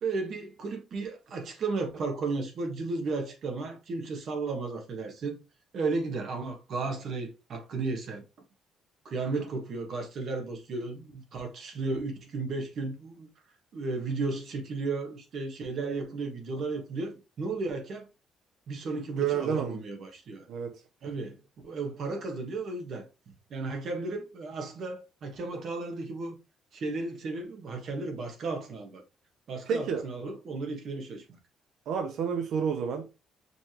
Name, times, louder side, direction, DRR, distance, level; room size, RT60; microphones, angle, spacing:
voice 1, 0.0-5.4 5.7-8.2 9.0-13.3 13.7-18.1 18.7-20.5 21.0-21.4 21.6-23.1 23.5-26.4 26.7-29.0 29.5-31.4, right 3 dB, 45° right, 1.3 m, -34 dB
voice 2, 19.2-19.8 20.5-20.8 29.7-30.1 31.9-33.1, right 7 dB, 65° right, 0.8 m, -29 dB
5.3 x 3.4 x 3.0 m
cardioid pair, 165°, 0 cm